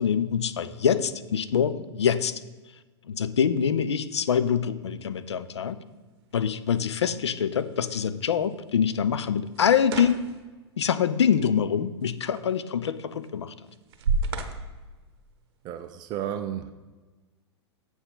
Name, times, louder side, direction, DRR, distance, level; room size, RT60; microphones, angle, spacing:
voice 1, 0.0-2.4 3.1-5.8 6.3-10.2 10.8-13.5, left 7 dB, 70° left, 13 dB, 0.5 m, -25 dB
sound 1, 4.9-15.9, right 4 dB, 55° right, 1.0 m, -37 dB
voice 2, 15.6-16.7, right 10 dB, 30° right, 8 dB, 0.4 m, -32 dB
7.9 x 5.9 x 5.6 m, 1.2 s
figure-of-eight pair, 100°, 15 cm